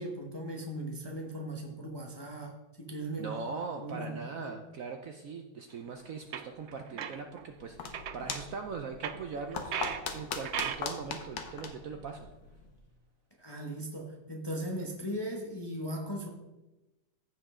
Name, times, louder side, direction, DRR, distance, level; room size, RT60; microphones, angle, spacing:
voice 1, 0.0-4.5 13.4-16.3, right 1 dB, 20° left, 0 dB, 0.8 m, -38 dB
voice 2, 3.2-9.8 10.1-12.3, right 5 dB, 65° right, 4 dB, 0.9 m, -40 dB
sound 1, 5.9-6.0 6.3-7.4 7.8-8.4 9.0-10.1 10.4-10.8, right 8 dB, 90° right, 0.6 m, -36 dB
sound 2, 7.4-12.8, left 5 dB, 60° left, 1.4 m, -41 dB
15.0 x 5.2 x 3.7 m, 1.0 s
omnidirectional pair, 1.9 m